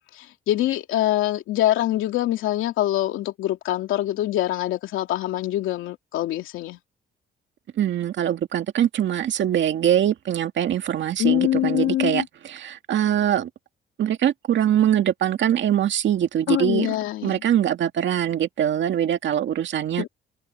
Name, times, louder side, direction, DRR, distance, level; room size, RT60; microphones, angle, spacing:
voice 1, 0.1-6.8 11.2-12.3 16.5-17.4 20.0-20.1, left 14 dB, 90° left, 2.9 m, -24 dB
voice 2, 7.8-13.5 14.0-16.9 17.2-20.1, right 10 dB, 65° right, 2.1 m, -23 dB
cardioid pair, 90°, 20 cm